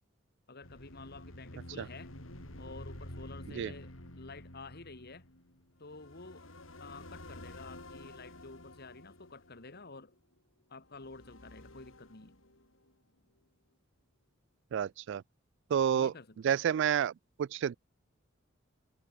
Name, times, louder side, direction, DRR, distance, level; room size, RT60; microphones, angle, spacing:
voice 1, 0.5-2.1 2.6-5.2 5.8-6.5 6.8-10.1 10.7-12.4 15.9-16.6, left 3 dB, 55° left, 2.1 m, -50 dB
sound 1, 0.6-10.2 10.9-12.9, left 1 dB, 80° left, 5.6 m, -50 dB
voice 2, 14.7-15.2 15.7-16.1 16.4-17.1 17.4-17.8, right 8 dB, 65° right, 0.3 m, -29 dB
head